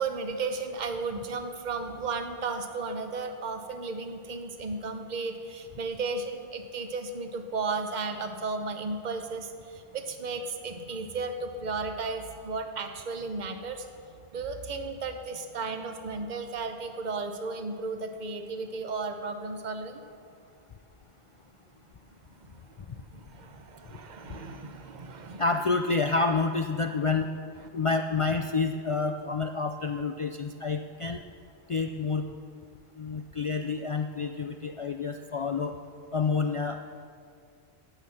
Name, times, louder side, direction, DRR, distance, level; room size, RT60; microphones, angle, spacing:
voice 1, 0.0-13.9 14.3-20.0 22.4-25.4, right 4 dB, 45° right, 7 dB, 1.0 m, -34 dB
voice 2, 25.4-27.3 27.7-31.2 31.7-32.2 33.0-35.7 36.1-36.8, left 4 dB, 60° left, 5 dB, 0.3 m, -28 dB
12.5 x 9.1 x 5.8 m, 2.3 s
omnidirectional pair, 1.1 m